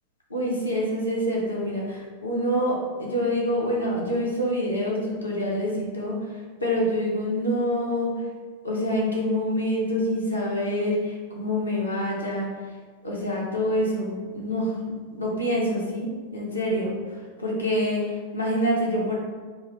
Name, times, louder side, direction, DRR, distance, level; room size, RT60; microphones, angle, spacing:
voice 1, 0.3-6.2 6.6-8.1 8.6-12.5 13.0-19.2, equal, 80° left, -4 dB, 0.8 m, -26 dB
3.7 x 2.5 x 2.9 m, 1.5 s
figure-of-eight pair, 90°, 0 cm